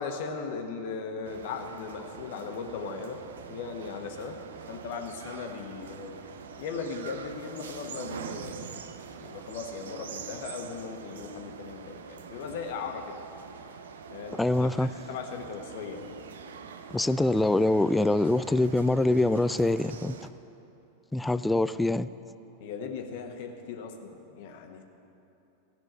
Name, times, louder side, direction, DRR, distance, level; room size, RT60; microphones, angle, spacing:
voice 1, 0.0-3.2 3.5-4.4 4.7-6.2 6.6-8.8 9.2-13.2 14.1-14.5 14.8-16.1 22.6-24.8, left 5 dB, 50° left, 4 dB, 1.3 m, -38 dB
sound 1, 1.2-20.3, right 6 dB, 65° right, 0.6 m, -44 dB
voice 2, 14.4-14.9 16.9-20.2 21.1-22.1, left 2 dB, 5° left, 14 dB, 0.3 m, -24 dB
15.5 x 6.1 x 9.0 m, 2.9 s
figure-of-eight pair, 90°, 0 cm